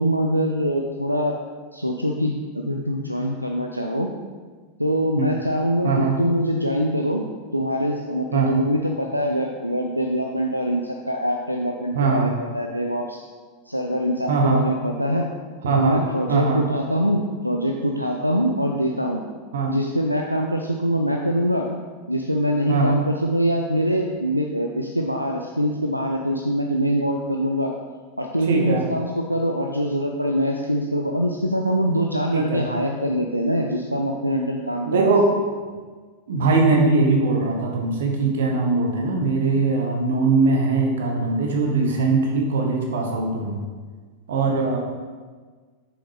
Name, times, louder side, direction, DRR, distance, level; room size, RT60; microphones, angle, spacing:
voice 1, 0.0-1.4 1.7-4.1 4.8-7.2 7.5-13.2 13.7-15.3 15.8-19.2 19.7-21.7 22.1-27.7 28.2-35.1, equal, 90° right, 2 dB, 0.4 m, -24 dB
voice 2, 5.8-6.2 8.3-8.5 11.9-12.3 14.3-14.6 15.6-16.0 16.3-16.6 19.5-19.7 22.7-22.9 28.5-28.8 32.3-32.7 34.9-35.3 36.3-43.6 44.3-44.8, right 3 dB, 60° right, 1 dB, 1.2 m, -21 dB
7.1 x 6.0 x 3.4 m, 1.5 s
figure-of-eight pair, 90°, 0 cm